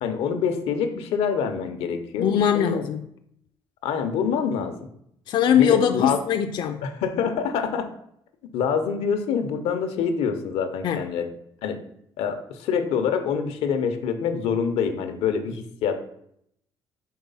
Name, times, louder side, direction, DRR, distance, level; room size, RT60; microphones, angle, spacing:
voice 1, 0.0-2.8 3.8-4.7 5.5-6.2 6.8-7.9 8.5-11.3 11.6-11.8 12.2-16.0, left 6 dB, 90° left, 7 dB, 0.8 m, -26 dB
voice 2, 2.2-3.0 5.3-6.8 10.8-11.0, left 9 dB, 50° left, 6 dB, 0.4 m, -21 dB
4.7 x 4.0 x 5.4 m, 0.72 s
cardioid pair, 155°, 10 cm